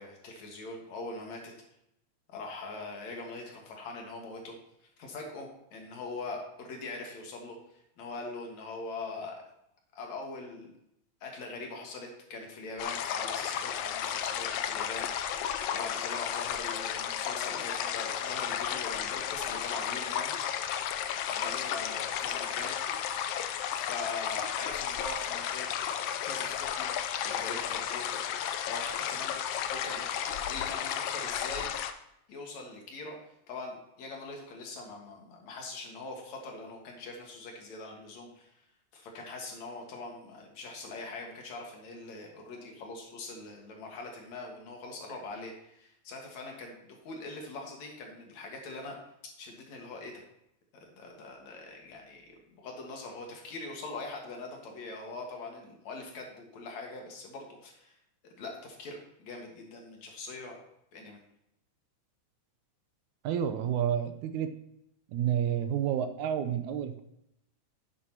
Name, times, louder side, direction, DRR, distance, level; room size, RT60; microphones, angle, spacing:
voice 1, 0.0-1.5 2.3-4.6 5.0-9.4 10.0-10.8 11.2-20.5 21.3-22.7 23.7-25.7 26.2-26.9 27.2-29.4 29.6-31.7 32.3-33.2 33.5-38.6 38.9-49.0 49.4-50.2 50.7-58.0 58.2-60.6 60.9-61.2, left 3 dB, 70° left, 1 dB, 2.8 m, -42 dB
sound 1, 12.8-31.9, left 9 dB, 85° left, 1.4 m, -33 dB
voice 2, 63.2-64.5 65.1-67.0, right 9 dB, 85° right, 8 dB, 2.1 m, -30 dB
11.0 x 8.6 x 2.9 m, 0.80 s
omnidirectional pair, 3.4 m